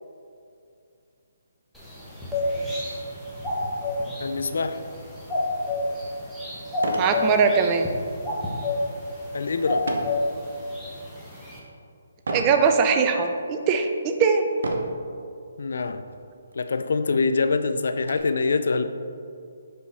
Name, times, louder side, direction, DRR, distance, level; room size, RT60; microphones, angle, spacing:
sound 1, 1.7-11.6, left 2 dB, ahead, 1.0 m, -30 dB
voice 1, 4.2-4.8 9.3-9.9 15.6-16.0 16.6-18.8, left 4 dB, 70° left, 10 dB, 0.3 m, -24 dB
sound 2, 5.8-5.9 6.7-7.2 7.6-7.9 9.9-10.2 10.8-11.2 12.3-12.6 13.4-13.5 14.6-15.0 16.0-16.2 16.5-16.6 17.1-18.2, right 2 dB, 70° right, 0.7 m, -31 dB
voice 2, 7.0-7.9 12.3-14.4, right 5 dB, 25° right, 5 dB, 0.5 m, -21 dB
5.3 x 5.3 x 3.4 m, 2.5 s
hypercardioid pair, 150°, 0 cm